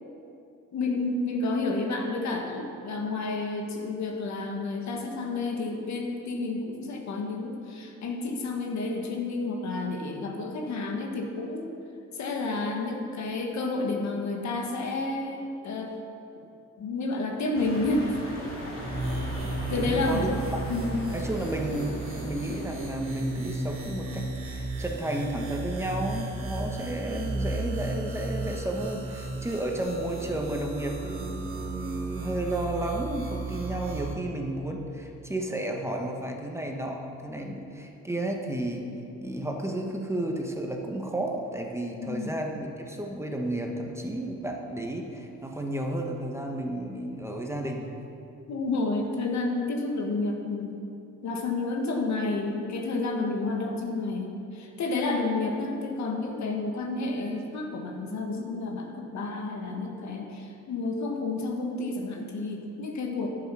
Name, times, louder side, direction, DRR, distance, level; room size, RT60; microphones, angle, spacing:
voice 1, 0.7-11.7 12.1-15.9 16.8-18.2 19.7-20.3 20.7-21.0 42.0-42.3 48.5-50.7 51.2-63.3, left 3 dB, 65° left, 2 dB, 1.5 m, -30 dB
sound 1, 17.5-24.1, left 1 dB, 45° left, 2.4 m, -40 dB
sound 2, 18.8-34.1, right 2 dB, 45° right, 3.0 m, -34 dB
voice 2, 19.7-20.3 21.1-38.9 39.2-47.9, right 1 dB, 10° right, 1 dB, 1.2 m, -32 dB
10.5 x 7.5 x 6.2 m, 2.7 s
cardioid pair, 90°, 30 cm